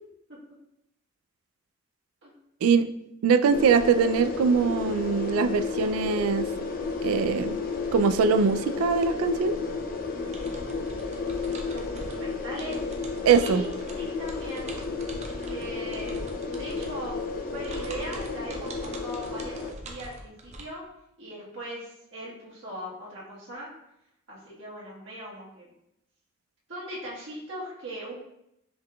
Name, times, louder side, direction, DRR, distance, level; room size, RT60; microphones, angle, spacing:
voice 1, 3.2-6.5 7.0-7.6 7.9-9.6 13.2-13.6, right 5 dB, 90° right, 11 dB, 0.3 m, -22 dB
sound 1, 3.5-19.7, left 4 dB, 40° left, 0.4 m, -32 dB
sound 2, 10.3-20.6, right 2 dB, 35° right, 0.5 m, -43 dB
voice 2, 11.7-12.9 13.4-14.9 15.5-17.2 17.5-20.8 21.2-23.7 24.3-25.7 26.7-28.1, right 1 dB, 60° right, -6 dB, 1.5 m, -39 dB
5.3 x 3.7 x 2.2 m, 0.81 s
head